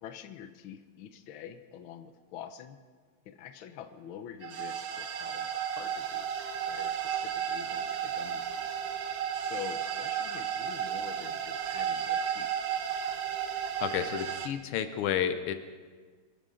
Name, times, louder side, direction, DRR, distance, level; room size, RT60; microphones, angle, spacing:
voice 1, 0.0-2.8 3.3-8.8 9.4-12.5, left 9 dB, 70° left, 9 dB, 1.6 m, -46 dB
sound 1, 4.4-14.5, right 8 dB, 55° right, 1.1 m, -33 dB
voice 2, 13.8-15.5, left 9 dB, 85° left, 10 dB, 1.7 m, -31 dB
25.0 x 12.5 x 3.8 m, 1.5 s
omnidirectional pair, 2.4 m